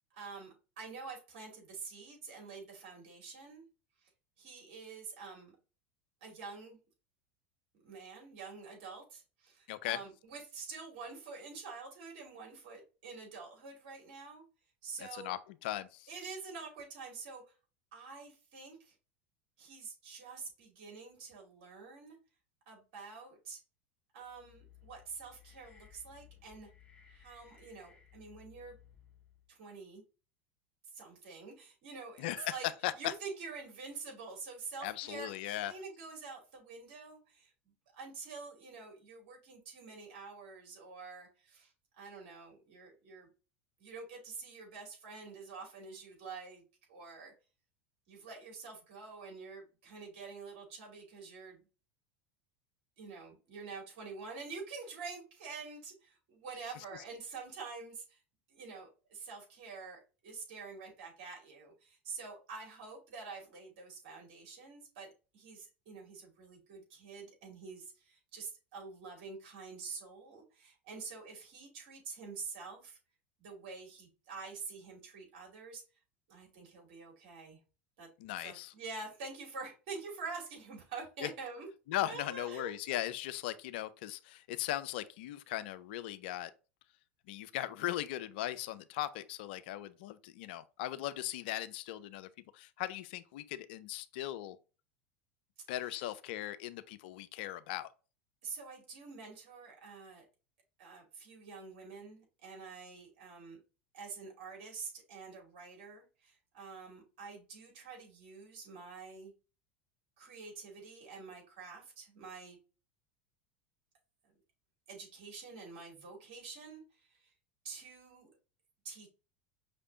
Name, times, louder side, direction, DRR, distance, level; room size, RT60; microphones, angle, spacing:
voice 1, 0.1-3.6 4.0-4.1 4.4-5.5 6.2-6.8 7.8-14.4 14.8-15.4 16.1-17.6 17.9-18.9 19.6-22.2 22.7-23.6 24.1-26.7 27.1-28.8 29.5-30.0 30.9-32.7 32.9-37.5 37.9-43.3 43.8-46.6 46.9-47.3 48.1-51.6 53.0-58.2 58.5-73.0 73.4-75.8 76.3-77.6 78.0-78.1 78.4-81.7 82.1-82.7 98.4-100.2 100.8-103.6 103.9-109.3 110.2-112.6 114.9-117.3 117.6-118.3 118.8-119.1, right 4 dB, 60° right, 2.6 m, -47 dB
voice 2, 9.7-10.0 15.0-16.1 32.2-33.1 34.8-35.7 78.2-78.7 81.2-81.3 81.9-86.5 87.3-94.6 95.7-97.9, left 14 dB, 60° left, 0.4 m, -38 dB
sound 1, 24.2-29.5, left 9 dB, 15° left, 1.5 m, -60 dB
5.6 x 3.4 x 2.6 m
figure-of-eight pair, 80°, 6 cm